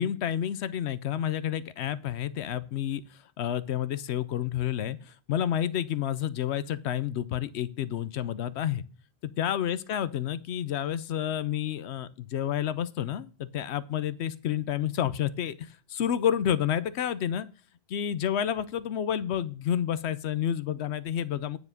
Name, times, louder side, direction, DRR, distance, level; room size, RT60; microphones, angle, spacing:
voice 1, 0.0-8.8 9.2-17.5 17.9-21.6, left 10 dB, 85° left, 15 dB, 0.9 m, -30 dB
9.6 x 5.0 x 6.5 m, 0.36 s
omnidirectional pair, 1.1 m